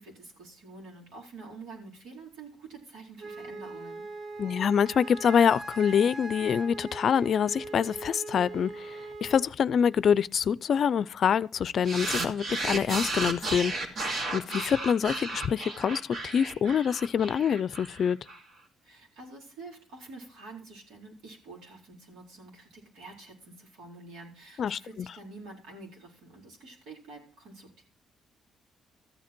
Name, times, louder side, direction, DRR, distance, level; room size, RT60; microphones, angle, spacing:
voice 1, 0.0-4.0 18.8-27.8, right 3 dB, 85° right, 4.2 m, -47 dB
Wind instrument woodwind instrument, 3.2-9.5, right 3 dB, 45° right, 1.7 m, -41 dB
voice 2, 4.4-13.9 14.3-18.2 24.6-25.1, left 7 dB, 60° left, 0.4 m, -26 dB
sound 1, 11.8-18.4, right 2 dB, 60° right, 2.6 m, -33 dB
14.0 x 8.5 x 4.4 m
cardioid pair, 90°, 0 cm